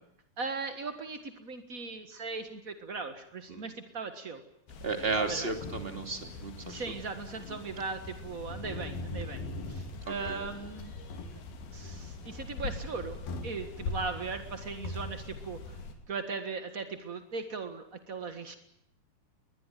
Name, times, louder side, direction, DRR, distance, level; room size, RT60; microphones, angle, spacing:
voice 1, 0.4-4.4 5.2-5.5 6.7-9.4 9.7-10.9 11.7-15.8 16.1-18.5, right 4 dB, 60° right, 8 dB, 0.8 m, -38 dB
sound 1, 4.7-15.9, left 3 dB, 75° left, 4.6 m, -41 dB
voice 2, 4.8-6.8 10.3-10.4, right 3 dB, 15° right, 6 dB, 2.5 m, -33 dB
22.0 x 21.0 x 9.2 m, 0.76 s
omnidirectional pair, 4.4 m